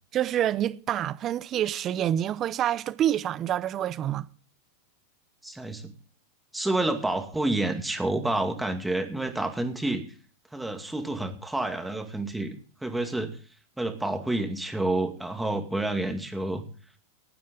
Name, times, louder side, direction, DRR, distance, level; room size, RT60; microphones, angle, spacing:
voice 1, 0.1-4.3, right 11 dB, 35° right, 0.8 m, -27 dB
voice 2, 5.4-5.9 6.5-10.0 10.5-12.6 12.8-13.4 13.8-16.6, right 2 dB, 5° right, 2.2 m, -29 dB
18.0 x 9.3 x 3.8 m
hypercardioid pair, 105°, 0 cm